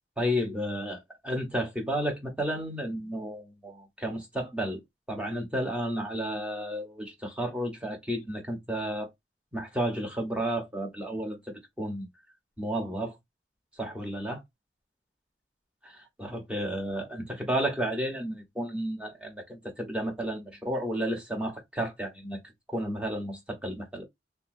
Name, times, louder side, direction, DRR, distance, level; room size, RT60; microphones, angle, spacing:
voice 1, 0.2-4.8 5.1-9.1 9.5-11.4 11.8-12.1 12.6-13.1 13.8-14.4 16.2-22.4 22.7-24.0, equal, 5° right, 1.1 m, -32 dB
3.5 x 2.6 x 2.6 m
head